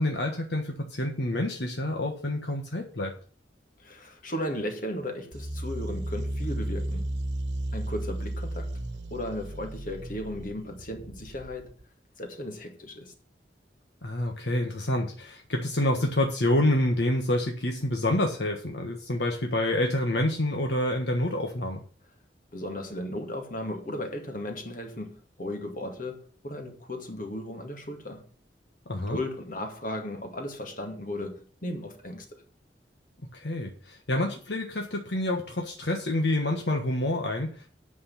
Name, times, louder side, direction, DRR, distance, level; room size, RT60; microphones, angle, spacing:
voice 1, 0.0-3.1 14.0-21.8 28.9-29.2 33.3-37.7, left 1 dB, 70° left, 1.4 m, -27 dB
voice 2, 3.8-7.1 7.7-8.8 9.1-11.7 12.2-13.1 22.5-28.3 29.1-32.4, left 1 dB, 50° left, 2.2 m, -36 dB
sound 1, 5.3-11.8, right 1 dB, 75° right, 1.1 m, -34 dB
8.7 x 6.2 x 7.4 m
head